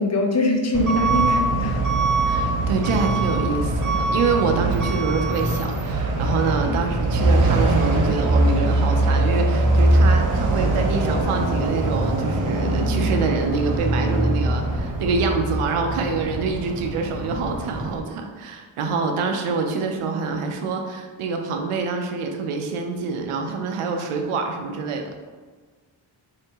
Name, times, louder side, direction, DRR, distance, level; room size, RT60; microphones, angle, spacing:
voice 1, 0.0-1.8 6.6-6.8 19.6-19.8, left 2 dB, 30° left, 1 dB, 0.8 m, -23 dB
Truck / Alarm, 0.7-18.0, right 2 dB, 40° right, 0.7 m, -22 dB
voice 2, 2.3-25.2, right 4 dB, 80° right, 4 dB, 0.6 m, -26 dB
4.3 x 2.8 x 2.8 m, 1.4 s
cardioid pair, 55°, 50 cm